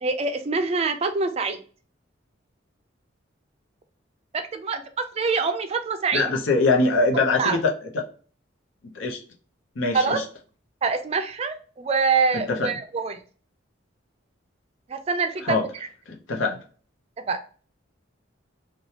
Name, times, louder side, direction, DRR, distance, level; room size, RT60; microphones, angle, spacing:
voice 1, 0.0-1.6 4.3-4.8 5.2-6.3 7.4-7.6 9.9-10.2 10.8-13.2 14.9-15.6 17.3-17.4, right 4 dB, 30° right, 8 dB, 0.3 m, -25 dB
voice 2, 6.1-7.7 8.9-9.2 9.8-10.2 12.5-12.7 15.4-15.6 16.3-16.6, left 3 dB, 90° left, 0 dB, 0.7 m, -22 dB
3.1 x 2.2 x 2.8 m, 0.40 s
head